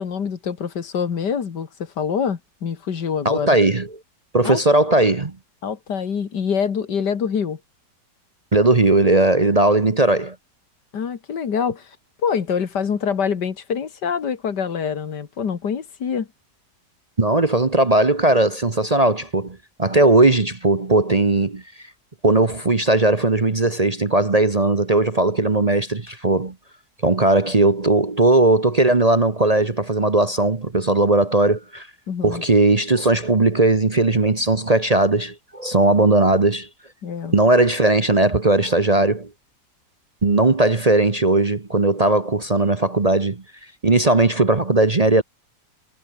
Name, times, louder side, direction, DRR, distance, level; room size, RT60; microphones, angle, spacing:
voice 1, 0.0-3.6 4.4-4.6 5.6-7.6 10.9-11.9 12.2-16.3 32.1-32.4 37.0-37.4, left 7 dB, 80° left, 2.4 m, -25 dB
voice 2, 3.2-3.9 4.3-5.3 8.5-10.3 17.2-21.6 22.2-26.5 27.0-31.9 32.2-36.7 37.3-39.3 40.2-43.4 43.8-45.2, right 2 dB, 25° right, 1.0 m, -18 dB
omnidirectional pair, 1.8 m